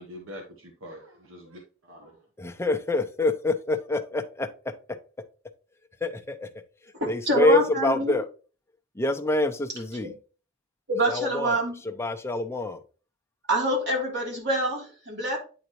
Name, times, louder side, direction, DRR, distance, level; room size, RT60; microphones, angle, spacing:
voice 1, 0.0-2.2, equal, 85° right, 2 dB, 1.1 m, -44 dB
voice 2, 2.4-4.5 6.0-6.6 7.0-8.3 8.9-10.1 11.1-12.8, left 2 dB, 15° left, 7 dB, 0.6 m, -26 dB
voice 3, 6.9-8.1 10.0-10.1 10.9-11.8 13.5-15.4, right 1 dB, 60° right, -2 dB, 3.0 m, -26 dB
9.1 x 4.0 x 3.0 m, 0.37 s
head